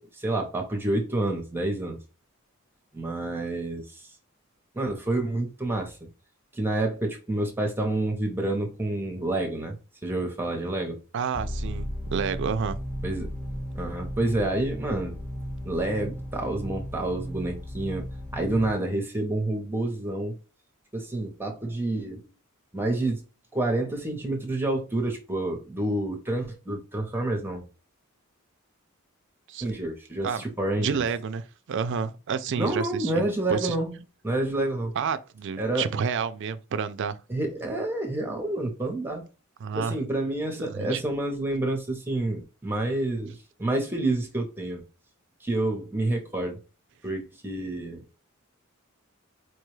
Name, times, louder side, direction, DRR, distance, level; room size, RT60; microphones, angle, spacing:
voice 1, 0.1-2.0 2.9-4.2 4.7-6.0 6.5-9.8 10.0-11.0 13.0-13.3 13.7-15.1 15.6-18.0 18.3-20.4 20.9-22.3 22.7-23.2 23.5-27.6 29.6-31.0 32.6-34.9 35.6-35.9 37.3-39.2 39.7-44.8 45.4-46.6 47.0-48.2, right 2 dB, 10° right, 0.7 m, -28 dB
voice 2, 11.1-12.8 29.5-29.7 30.2-30.4 30.8-33.7 35.0-37.2 39.6-40.0 40.7-41.0, right 6 dB, 55° right, 0.4 m, -30 dB
sound 1, 11.3-18.7, equal, 5° left, 1.0 m, -35 dB
4.5 x 2.3 x 3.1 m
head